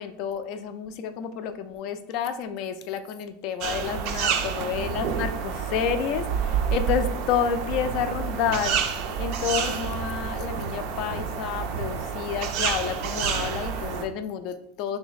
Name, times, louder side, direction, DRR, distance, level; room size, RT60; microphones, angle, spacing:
voice 1, 0.0-8.8 9.2-15.0, left 8 dB, 40° left, 9 dB, 0.4 m, -30 dB
sound 1, 3.6-14.1, right 7 dB, 40° right, 0.4 m, -29 dB
3.4 x 2.9 x 4.0 m, 0.68 s
supercardioid pair, 170°, 0 cm